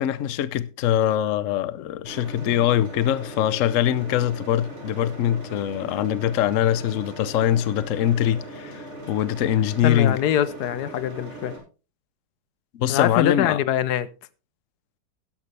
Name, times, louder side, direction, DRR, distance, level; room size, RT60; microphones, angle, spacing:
voice 1, 0.0-10.2 12.7-13.6, left 11 dB, 85° left, 0.7 m, -23 dB
sound 1, 2.0-11.6, right 1 dB, 35° right, 4.1 m, -39 dB
voice 2, 9.8-11.5 12.9-14.1, left 10 dB, 65° left, 1.0 m, -24 dB
12.0 x 11.0 x 3.3 m
omnidirectional pair, 2.2 m